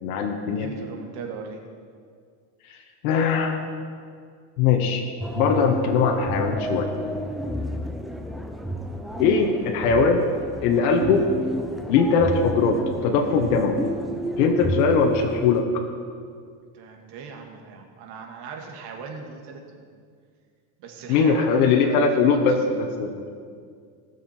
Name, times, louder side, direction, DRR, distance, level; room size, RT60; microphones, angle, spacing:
voice 1, 0.0-0.7 2.7-2.8 3.0-3.7 4.6-5.0 5.3-6.9 9.2-10.2 10.6-11.2 11.9-12.8 13.0-13.8 14.4-15.6 21.1-23.2, left 5 dB, 85° left, 4 dB, 1.2 m, -21 dB
voice 2, 0.6-1.6 16.7-19.9 20.8-22.0 22.3-22.4, right 5 dB, 65° right, 2 dB, 1.9 m, -38 dB
sound 1, 5.2-15.6, right 1 dB, ahead, 0.5 m, -31 dB
17.5 x 6.7 x 4.4 m, 2.1 s
supercardioid pair, 130°, 43 cm